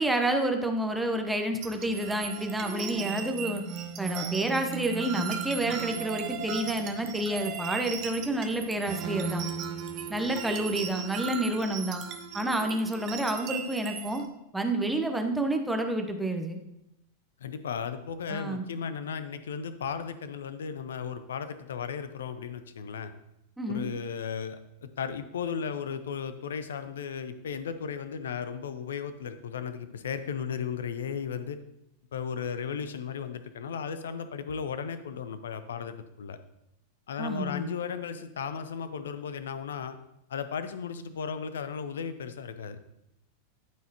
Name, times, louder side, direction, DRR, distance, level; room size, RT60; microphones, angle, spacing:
voice 1, 0.0-3.6 4.0-9.5 10.1-12.0 12.3-14.2 14.5-16.6 18.3-18.7 23.6-23.9 37.2-37.7, right 1 dB, 5° right, 4 dB, 0.9 m, -29 dB
sound 1, 1.6-14.3, right 7 dB, 35° right, 0.8 m, -37 dB
voice 2, 17.4-23.1 23.7-31.6 32.1-36.4 37.1-40.0 40.3-42.8, left 6 dB, 65° left, 11 dB, 0.5 m, -35 dB
12.5 x 4.7 x 2.9 m, 0.84 s
figure-of-eight pair, 90°, 0 cm